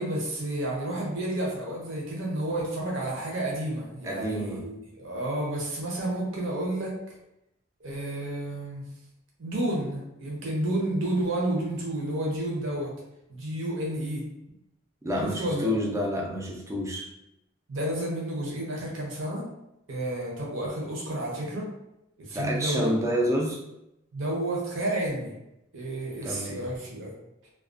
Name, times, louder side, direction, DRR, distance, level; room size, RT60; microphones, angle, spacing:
voice 1, 0.0-6.9 7.8-8.8 9.4-12.9 13.3-14.2 15.2-15.7 17.7-19.4 19.9-21.7 22.2-22.9 24.1-25.3 25.7-27.1, right 1 dB, 75° right, -3 dB, 0.7 m, -31 dB
voice 2, 4.0-4.7 15.0-17.1 22.3-23.6 26.2-26.7, equal, 15° right, -1 dB, 0.3 m, -28 dB
2.3 x 2.2 x 2.4 m, 0.85 s
head